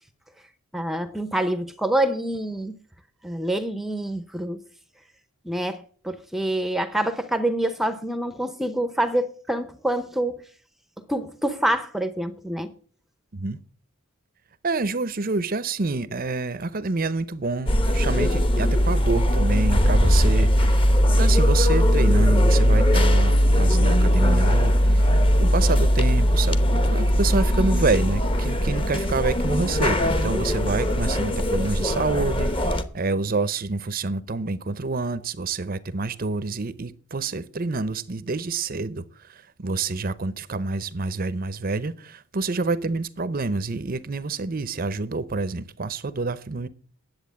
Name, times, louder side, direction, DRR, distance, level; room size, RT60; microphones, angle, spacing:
voice 1, 0.7-2.8 3.2-4.6 5.4-10.4 11.1-12.7, right 1 dB, ahead, 0.7 m, -26 dB
voice 2, 14.6-46.7, right 3 dB, 40° right, 0.7 m, -28 dB
sound 1, 17.7-32.8, equal, 25° left, 1.0 m, -19 dB
10.5 x 8.0 x 8.0 m
head